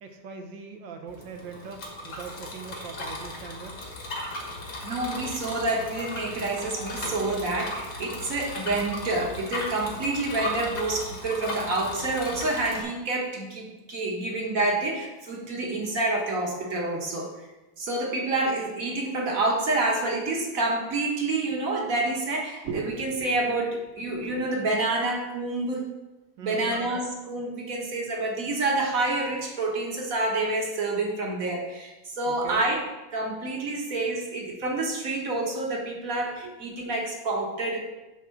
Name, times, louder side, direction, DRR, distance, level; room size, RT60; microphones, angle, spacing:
voice 1, 0.0-3.8 26.4-26.8 32.3-32.6, right 5 dB, 70° right, 4 dB, 1.6 m, -41 dB
Bicycle, 1.1-12.8, left 1 dB, 60° left, 2.0 m, -36 dB
voice 2, 4.8-17.3 17.8-25.8 26.4-32.8 33.1-37.8, right 2 dB, 45° right, 0 dB, 1.6 m, -28 dB
9.4 x 3.6 x 5.8 m, 1.0 s
omnidirectional pair, 2.2 m